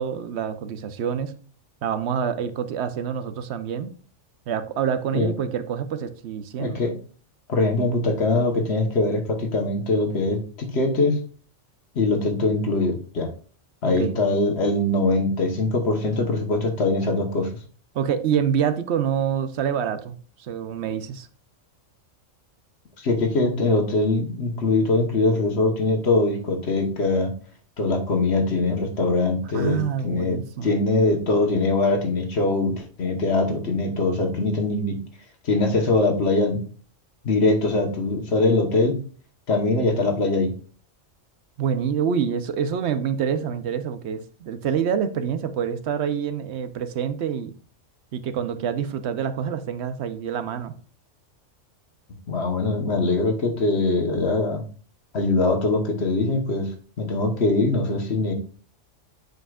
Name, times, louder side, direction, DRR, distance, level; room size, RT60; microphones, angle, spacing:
voice 1, 0.0-1.4 1.8-3.9 4.5-6.8 14.0-14.2 17.9-21.3 29.5-30.8 41.6-47.5 48.1-50.7, right 8 dB, 65° right, 0.9 m, -26 dB
voice 2, 6.6-6.9 7.5-11.2 11.9-13.3 13.8-17.5 23.0-27.3 27.8-35.0 35.4-36.6 37.2-39.0 39.5-40.5 52.3-54.6 55.1-56.7 57.0-58.3, left 2 dB, 60° left, 1.4 m, -22 dB
7.8 x 5.4 x 2.3 m
omnidirectional pair, 1.3 m